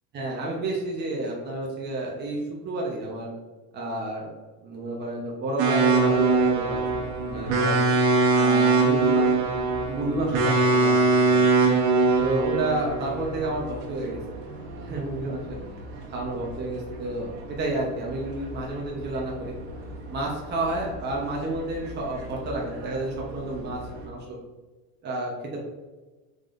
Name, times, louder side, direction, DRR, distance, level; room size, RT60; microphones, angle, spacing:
voice 1, 0.1-2.4 2.6-3.3 3.7-4.3 4.6-6.8 7.2-7.9 8.3-9.5 9.8-11.4 12.2-14.4 14.8-15.6 16.1-19.5 20.1-24.4 25.0-25.6, right 2 dB, 30° right, -2 dB, 1.0 m, -30 dB
sound 1, 5.6-24.0, right 3 dB, 80° right, 1.3 m, -24 dB
5.3 x 3.8 x 2.6 m, 1.2 s
supercardioid pair, 130°, 34 cm